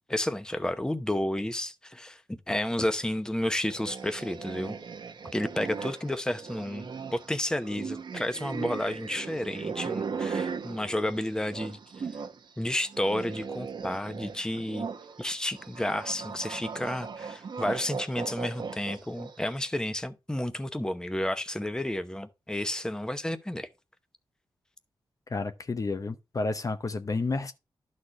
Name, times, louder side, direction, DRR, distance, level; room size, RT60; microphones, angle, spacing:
voice 1, 0.1-4.8 5.3-12.1 12.6-14.9 15.2-23.7, left 1 dB, 10° left, 0.8 m, -31 dB
sound 1, 3.7-12.4 12.7-19.5, right 5 dB, 65° right, 1.0 m, -38 dB
voice 2, 25.3-27.5, left 3 dB, 40° left, 0.8 m, -31 dB
11.5 x 4.3 x 4.8 m
cardioid pair, 80°, 9 cm